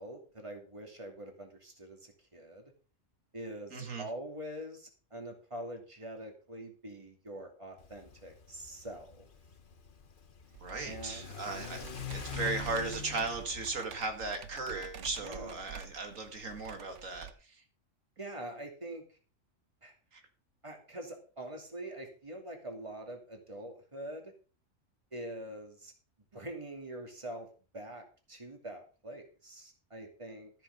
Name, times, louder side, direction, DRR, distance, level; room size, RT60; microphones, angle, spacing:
voice 1, 0.0-2.6 3.3-9.3 10.8-11.3 15.2-15.6 18.2-19.0 19.8-19.9 20.6-24.3 25.1-25.9 26.3-27.5 27.7-30.5, right 1 dB, 25° right, 2 dB, 2.7 m, -44 dB
voice 2, 3.7-4.1 10.6-17.6 20.1-20.2, right 3 dB, 85° right, 5 dB, 2.4 m, -37 dB
Car / Accelerating revving vroom, 7.8-17.2, left 8 dB, 45° left, 1.1 m, -46 dB
Computer keyboard, 10.5-17.3, right 8 dB, 65° right, 1.2 m, -48 dB
13.5 x 7.5 x 5.2 m, 0.37 s
omnidirectional pair, 1.4 m